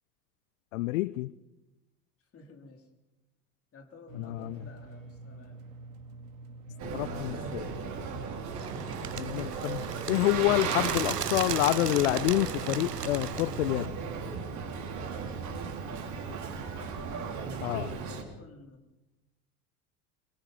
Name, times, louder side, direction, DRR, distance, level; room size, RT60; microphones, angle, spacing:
voice 1, 0.7-1.3 4.1-4.6 6.8-7.7 9.2-13.9 17.6-17.9, left 18 dB, 60° left, 20 dB, 0.7 m, -28 dB
voice 2, 2.3-2.9 3.7-5.7 16.3-18.8, left 3 dB, 30° left, 4 dB, 3.6 m, -52 dB
sound 1, 4.1-14.5, right 3 dB, 55° right, 2.4 m, -47 dB
Boat Water vehicle, 6.8-18.2, right 5 dB, 40° right, 3.7 m, -37 dB
Bird, 8.5-13.9, right 8 dB, 90° right, 0.8 m, -36 dB
25.5 x 22.0 x 5.6 m, 0.99 s
figure-of-eight pair, 80°, 46 cm